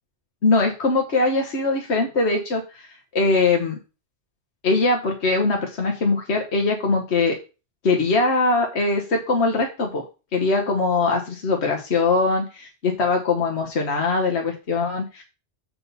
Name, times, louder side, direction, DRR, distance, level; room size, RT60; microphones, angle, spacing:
voice 1, 0.4-3.8 4.6-7.4 7.8-10.0 10.3-15.2, left 3 dB, 70° left, 2 dB, 1.5 m, -22 dB
7.6 x 6.0 x 4.1 m, 0.31 s
omnidirectional pair, 1.2 m